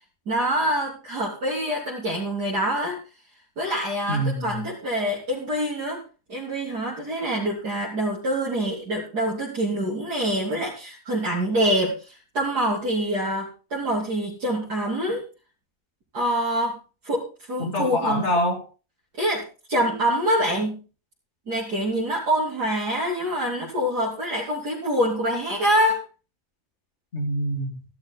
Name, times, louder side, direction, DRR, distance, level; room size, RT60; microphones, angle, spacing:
voice 1, 0.3-3.0 3.6-6.0 6.3-15.2 16.1-16.8 17.0-18.3 19.2-20.8 21.5-26.0, equal, 80° right, -5 dB, 3.8 m, -25 dB
voice 2, 4.1-4.6 17.6-18.6 27.1-27.8, equal, 45° left, 1 dB, 3.5 m, -25 dB
14.0 x 12.0 x 4.0 m, 0.35 s
omnidirectional pair, 1.7 m